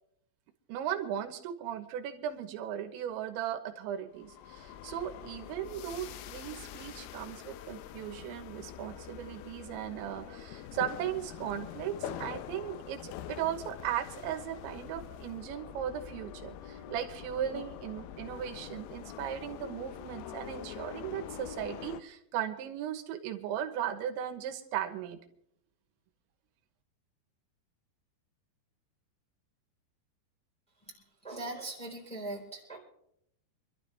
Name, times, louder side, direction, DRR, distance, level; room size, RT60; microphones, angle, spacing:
voice 1, 0.7-25.2, right 10 dB, 90° right, 6 dB, 3.4 m, -37 dB
sound 1, 4.2-22.0, left 10 dB, 80° left, 2.4 m, -45 dB
voice 2, 31.2-32.8, right 2 dB, ahead, -2 dB, 3.5 m, -40 dB
26.0 x 12.5 x 3.4 m, 0.73 s
omnidirectional pair, 5.2 m